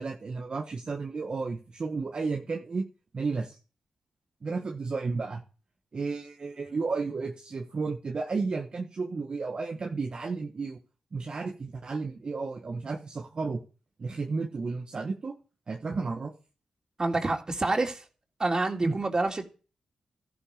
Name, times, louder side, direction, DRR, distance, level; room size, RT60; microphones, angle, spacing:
voice 1, 0.0-2.8 3.1-3.6 4.4-5.4 5.9-10.8 11.1-13.6 14.0-15.3 15.7-16.3 18.8-18.9, right 4 dB, 50° right, 1.6 m, -32 dB
voice 2, 17.0-18.0 18.4-19.4, right 2 dB, 35° right, 3.3 m, -27 dB
13.5 x 12.0 x 5.2 m
supercardioid pair, 45°, 2 cm